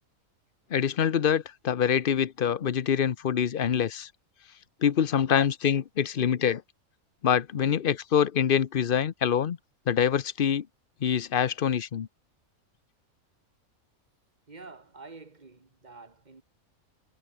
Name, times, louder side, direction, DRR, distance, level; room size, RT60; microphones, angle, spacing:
voice 1, 0.7-4.1 4.8-6.6 7.2-9.6 9.9-10.7 11.0-12.1, left 8 dB, 45° left, 0.8 m, -25 dB
voice 2, 14.5-16.4, right 3 dB, 30° right, 2.0 m, -48 dB
omnidirectional pair, 1.5 m